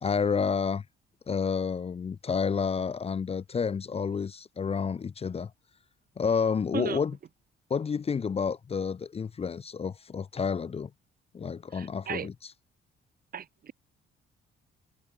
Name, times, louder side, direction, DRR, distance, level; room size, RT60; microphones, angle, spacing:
voice 1, 0.0-0.8 1.3-5.5 6.2-7.2 7.7-10.9 11.3-12.3, left 6 dB, 30° left, 0.6 m, -30 dB
voice 2, 11.7-12.3 13.3-13.7, right 8 dB, 50° right, 1.0 m, -36 dB
cardioid pair, 90°, 20 cm